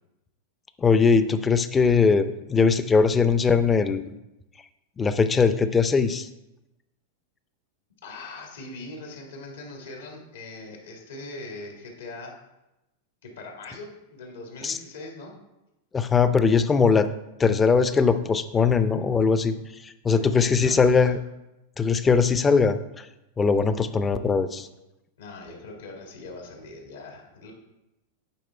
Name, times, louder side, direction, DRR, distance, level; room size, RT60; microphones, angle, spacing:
voice 1, 0.8-4.1 5.0-6.3 14.6-14.8 15.9-17.1 17.4-19.6 19.8-21.2 21.8-23.1 23.4-24.7, left 5 dB, 20° left, 11 dB, 0.5 m, -21 dB
voice 2, 8.0-12.3 13.2-15.3 20.1-21.1 25.2-27.5, left 2 dB, 80° left, 0 dB, 1.8 m, -41 dB
8.4 x 3.6 x 4.5 m, 0.94 s
hypercardioid pair, 110°, 0 cm